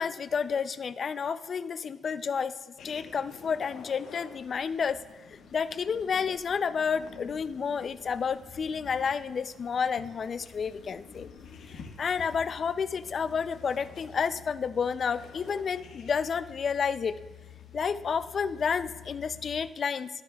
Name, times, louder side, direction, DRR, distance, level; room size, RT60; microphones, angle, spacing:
voice 1, 0.0-2.6 2.8-5.0 5.3-11.3 11.7-17.1 17.7-20.1, left 6 dB, 50° left, 14 dB, 0.4 m, -30 dB
sound 1, 2.8-19.6, left 6 dB, 75° left, 1.3 m, -49 dB
12.5 x 9.4 x 2.3 m, 1.2 s
cardioid pair, 90°, 0 cm